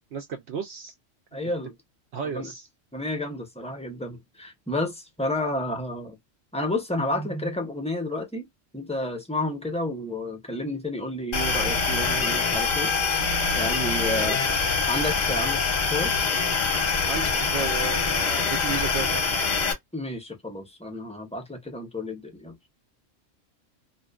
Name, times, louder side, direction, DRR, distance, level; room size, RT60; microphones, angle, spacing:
voice 1, 0.1-0.9 1.3-1.5 2.1-2.7 14.1-14.5 17.1-19.6, right 5 dB, 65° right, 0.8 m, -34 dB
voice 2, 1.3-1.7 2.3-2.5 2.9-6.2 6.5-8.5 8.7-13.3 13.5-14.4 14.9-16.1 19.9-22.5, left 1 dB, 10° left, 0.4 m, -31 dB
sound 1, 11.3-19.7, left 4 dB, 45° left, 0.7 m, -24 dB
2.5 x 2.2 x 2.2 m
omnidirectional pair, 1.3 m